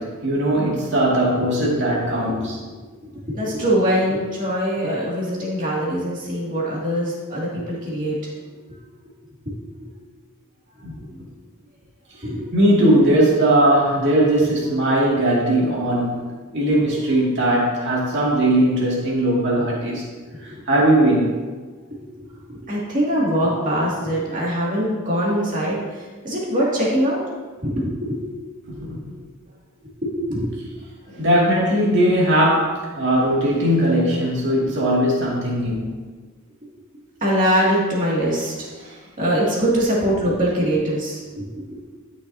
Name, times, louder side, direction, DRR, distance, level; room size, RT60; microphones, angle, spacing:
voice 1, 0.0-2.6 10.8-10.9 12.5-16.2 16.5-20.0 20.4-21.4 28.7-29.2 31.1-35.9 38.8-38.9, right 1 dB, 55° right, -5 dB, 2.3 m, -19 dB
voice 2, 1.4-1.8 2.2-2.5 2.9-8.2 9.8-9.9 10.8-11.2 12.2-12.4 19.6-19.7 20.3-20.6 21.9-27.2 27.6-28.2 30.0-30.6 34.6-34.7 37.2-38.7 39.2-42.0, equal, 40° right, -5 dB, 2.4 m, -23 dB
12.0 x 6.3 x 2.8 m, 1.4 s
head